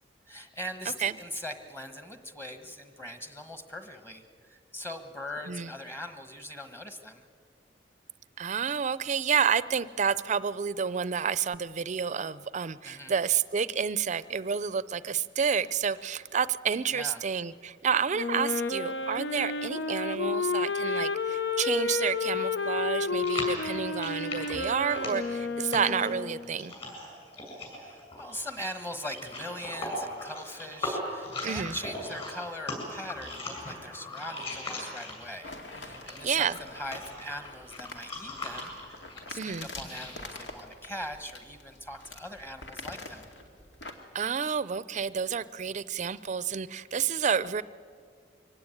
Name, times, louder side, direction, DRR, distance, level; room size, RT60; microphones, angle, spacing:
voice 1, 0.3-7.2 12.8-13.1 16.9-17.2 27.8-43.3, left 1 dB, 15° left, 8 dB, 1.4 m, -41 dB
voice 2, 8.4-26.7 31.4-31.8 36.2-36.5 39.3-39.7 44.1-47.6, right 7 dB, 45° right, 17 dB, 0.5 m, -29 dB
Wind instrument woodwind instrument, 18.1-26.5, left 4 dB, 70° left, 0.7 m, -31 dB
sound 1, 23.2-35.4 35.7-40.4, left 2 dB, 35° left, 7.4 m, -39 dB
sound 2, 35.4-43.9, left 2 dB, 90° left, 2.4 m, -45 dB
24.0 x 17.0 x 9.8 m, 2.2 s
head